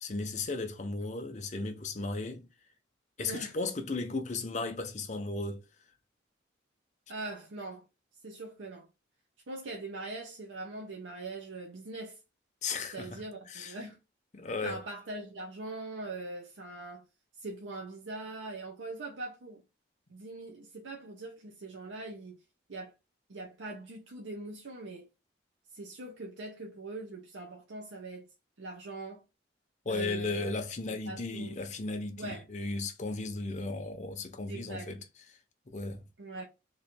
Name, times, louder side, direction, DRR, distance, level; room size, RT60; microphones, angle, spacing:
voice 1, 0.0-2.5 3.2-5.6 12.6-13.8 14.3-14.8 29.8-35.0 35.7-36.0, left 3 dB, 40° left, 0.6 m, -35 dB
voice 2, 7.1-7.8 8.2-8.9 9.5-12.2 12.9-14.0 14.6-17.0 17.4-19.6 20.1-22.4 22.7-22.9 23.3-25.1 25.7-28.3 28.6-29.2 29.9-30.5 31.1-31.6 32.2-32.5 34.5-34.9 36.2-36.4, right 2 dB, 85° right, 0.7 m, -42 dB
3.1 x 2.5 x 4.2 m
head